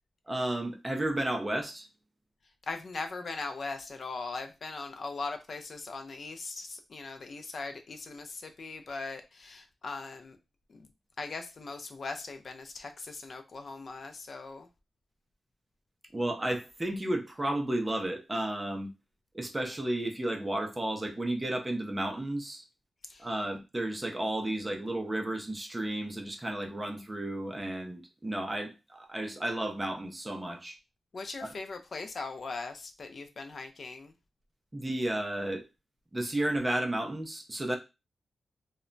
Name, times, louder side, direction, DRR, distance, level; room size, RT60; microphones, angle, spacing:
voice 1, 0.3-1.9 16.1-18.9 19.3-22.6 23.2-30.8 31.4-31.5 34.7-35.6 36.1-37.8, right 1 dB, 15° right, 0.5 m, -32 dB
voice 2, 2.6-10.4 10.7-10.9 11.2-14.7 23.0-23.3 31.1-34.1, left 3 dB, 50° left, 0.4 m, -40 dB
2.1 x 2.0 x 3.7 m
wide cardioid pair, 150°, 0 cm